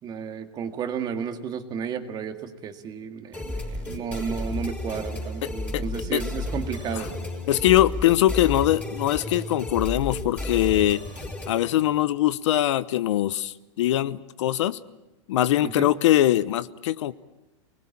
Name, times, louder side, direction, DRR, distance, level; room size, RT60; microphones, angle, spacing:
voice 1, 0.0-7.1 15.6-15.9, right 7 dB, 25° right, 7 dB, 2.0 m, -33 dB
sound 1, 3.3-11.7, left 2 dB, 10° left, 5.4 m, -32 dB
voice 2, 5.4-5.8 6.1-6.2 7.0-7.1 7.5-11.0 11.5-14.8 15.3-17.1, left 13 dB, 70° left, 16 dB, 0.9 m, -22 dB
29.0 x 20.0 x 8.7 m, 1.0 s
supercardioid pair, 145°, 16 cm